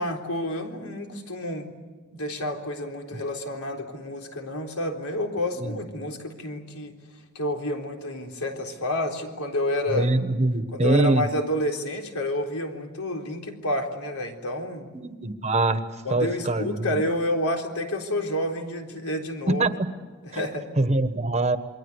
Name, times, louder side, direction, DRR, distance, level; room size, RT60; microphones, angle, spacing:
voice 1, 0.0-1.8 2.1-7.0 7.3-10.1 10.7-14.9 16.0-19.6 20.2-20.7, left 1 dB, 85° left, 2 dB, 3.9 m, -29 dB
voice 2, 9.9-11.2 14.9-15.8 16.1-17.0 19.6-19.7 20.3-20.4 20.8-21.6, right 2 dB, 30° right, 10 dB, 1.3 m, -23 dB
28.0 x 22.5 x 8.2 m, 1.3 s
head